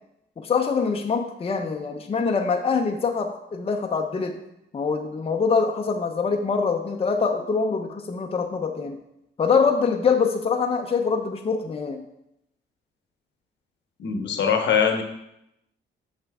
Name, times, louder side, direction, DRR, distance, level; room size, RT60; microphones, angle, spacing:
voice 1, 0.4-4.4 4.7-9.0 9.4-12.0, left 5 dB, 30° left, 3 dB, 0.6 m, -24 dB
voice 2, 14.0-15.0, left 7 dB, 65° left, 5 dB, 1.0 m, -22 dB
6.6 x 5.8 x 3.5 m, 0.83 s
cardioid pair, 90°, 20 cm